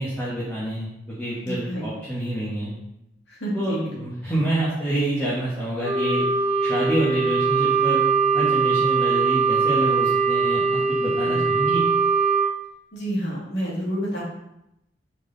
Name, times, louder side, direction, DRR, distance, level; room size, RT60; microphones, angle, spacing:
voice 1, 0.0-2.7 3.5-6.2 6.6-8.0 8.3-11.8, right 1 dB, 10° left, -10 dB, 1.5 m, -27 dB
voice 2, 1.5-1.9 3.3-3.9 11.3-11.5 12.9-14.2, right 1 dB, 65° left, -5 dB, 2.4 m, -29 dB
Wind instrument woodwind instrument, 5.8-12.5, right 4 dB, 10° right, 1.7 m, -21 dB
5.5 x 4.9 x 4.0 m, 0.83 s
head